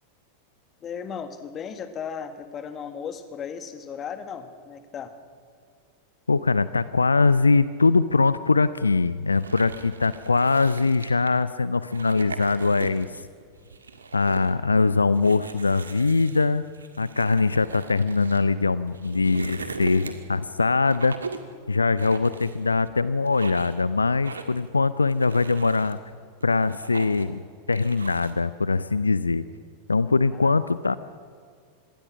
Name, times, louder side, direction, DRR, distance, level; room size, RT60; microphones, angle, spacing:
voice 1, 0.8-5.1 30.3-30.6, left 7 dB, 25° left, 8 dB, 2.1 m, -36 dB
voice 2, 6.3-13.2 14.1-16.6 17.0-21.1 21.7-26.0 26.4-27.4 27.7-29.5 29.9-30.9, left 4 dB, 80° left, 16 dB, 0.5 m, -22 dB
sound 1, 9.3-11.4 11.9-13.2 13.6-14.5 15.1-18.4 18.9-20.4 20.9-21.5 22.0-22.9 23.2-23.8 24.2-24.7 25.1-25.9 26.4-27.4 27.7-28.4, right 4 dB, 75° right, 1.9 m, -39 dB
26.0 x 22.0 x 6.2 m, 2.1 s
figure-of-eight pair, 90°, 0 cm